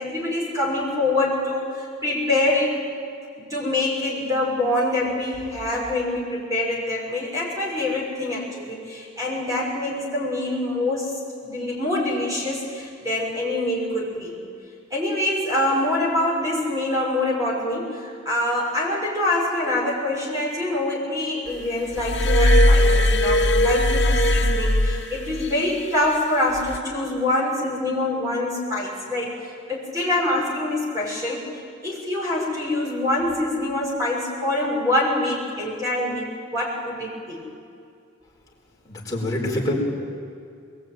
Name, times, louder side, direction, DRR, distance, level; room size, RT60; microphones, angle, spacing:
voice 1, 0.0-2.8 3.4-14.4 14.9-29.3 29.7-31.4 31.8-37.4, left 1 dB, 15° right, -4 dB, 6.6 m, -25 dB
Glass, 22.0-25.6 26.6-26.8, left 1 dB, 60° left, 1.2 m, -18 dB
voice 2, 38.9-39.7, left 1 dB, 20° left, -3 dB, 4.9 m, -25 dB
22.5 x 21.5 x 9.2 m, 2.4 s
head